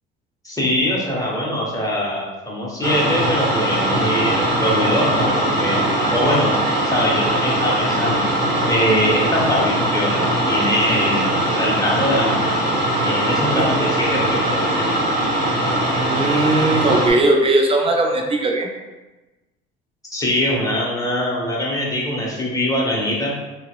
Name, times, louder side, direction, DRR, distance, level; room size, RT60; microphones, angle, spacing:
voice 1, 0.4-5.8 6.1-6.6 6.8-8.3 8.7-12.6 13.0-14.6 20.1-23.3, left 1 dB, 10° left, -4 dB, 0.8 m, -22 dB
sound 1, 2.8-17.1, right 1 dB, 55° right, 1.1 m, -20 dB
voice 2, 16.0-18.7, right 2 dB, 20° right, 2 dB, 0.4 m, -18 dB
2.7 x 2.0 x 2.3 m, 1.1 s
hypercardioid pair, 65°, 29 cm